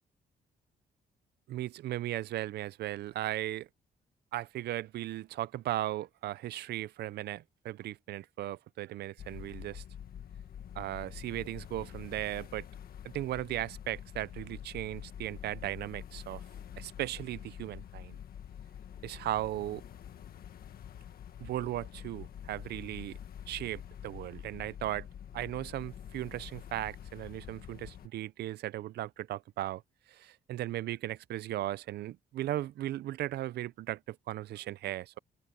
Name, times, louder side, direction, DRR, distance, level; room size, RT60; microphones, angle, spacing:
voice 1, 1.5-3.7 4.3-9.8 10.8-12.7 13.0-16.4 16.8-18.2 19.0-19.8 21.4-23.2 23.5-25.1 25.3-29.8 30.1-35.2, right 14 dB, 85° right, 0.6 m, -37 dB
sound 1, 9.2-28.1, left 9 dB, 65° left, 1.6 m, -47 dB
open air
cardioid pair, 110°, 17 cm